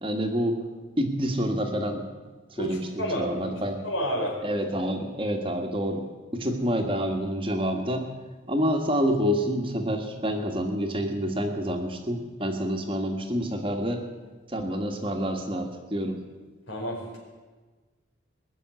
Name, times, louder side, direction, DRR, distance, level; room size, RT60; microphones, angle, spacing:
voice 1, 0.0-0.6 1.0-2.1 2.5-3.8 4.4-6.0 6.3-8.1 8.5-14.0 14.5-16.2, equal, 25° right, 3 dB, 1.5 m, -28 dB
voice 2, 2.6-3.6 3.8-4.4 16.7-17.2, equal, 85° left, -2 dB, 5.0 m, -30 dB
21.0 x 7.0 x 9.5 m, 1.3 s
head